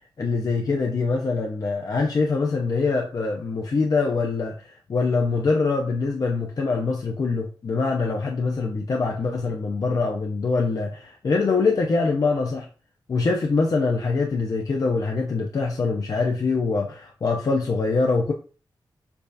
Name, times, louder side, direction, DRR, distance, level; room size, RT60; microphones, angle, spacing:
voice 1, 0.2-12.7 13.1-18.3, left 4 dB, 45° left, 1 dB, 0.5 m, -24 dB
6.7 x 2.4 x 2.6 m, 0.38 s
wide cardioid pair, 140°, 9 cm